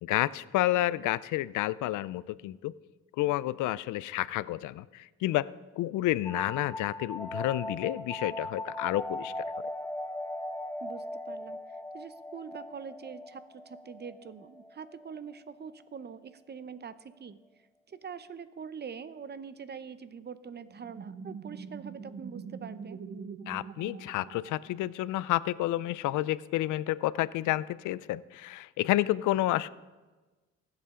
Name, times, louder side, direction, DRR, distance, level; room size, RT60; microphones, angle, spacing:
voice 1, 0.0-2.8 3.2-9.5 23.5-29.7, left 15 dB, 85° left, 19 dB, 0.5 m, -30 dB
sound 1, 6.2-15.6, left 1 dB, 10° left, 0.6 m, -39 dB
voice 2, 10.8-11.6 11.9-17.4 17.9-23.0, right 6 dB, 35° right, 13 dB, 0.7 m, -44 dB
sound 2, 20.7-25.2, right 6 dB, 50° right, 1.0 m, -43 dB
19.5 x 8.3 x 3.7 m, 1.2 s
cardioid pair, 90°, 30 cm